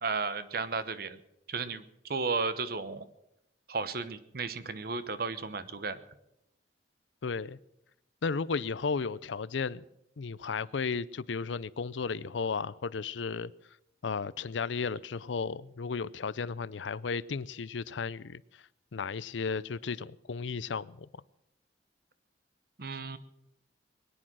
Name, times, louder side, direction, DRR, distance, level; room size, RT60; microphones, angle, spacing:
voice 1, 0.0-1.2 1.5-3.0 3.7-6.0 22.8-23.2, right 4 dB, 55° right, 1.0 m, -34 dB
voice 2, 7.2-7.6 8.2-9.8 10.2-13.5 14.0-18.4 18.9-21.1, left 5 dB, 85° left, 0.5 m, -34 dB
22.0 x 10.0 x 6.2 m
head